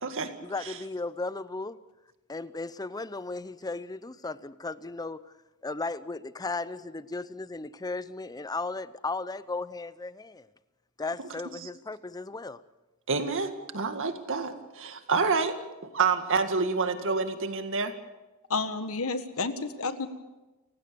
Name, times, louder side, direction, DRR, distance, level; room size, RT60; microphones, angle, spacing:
voice 1, 0.4-1.8 2.3-5.3 5.6-10.5 11.0-12.6, left 3 dB, 15° left, 0.6 m, -35 dB
voice 2, 13.1-15.6 15.9-17.9, right 4 dB, 60° right, 2.0 m, -28 dB
voice 3, 18.5-20.1, left 3 dB, 70° left, 1.7 m, -30 dB
29.5 x 16.0 x 7.0 m
head